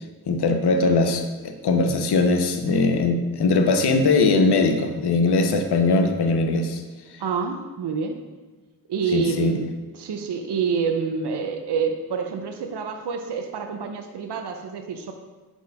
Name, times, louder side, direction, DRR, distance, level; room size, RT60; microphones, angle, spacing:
voice 1, 0.3-6.8 9.1-9.6, left 3 dB, 75° left, 5 dB, 0.7 m, -20 dB
voice 2, 7.2-8.2 8.9-9.6 9.9-15.1, right 6 dB, 85° right, 5 dB, 0.6 m, -27 dB
4.5 x 4.2 x 5.2 m, 1.3 s
wide cardioid pair, 65°, 39 cm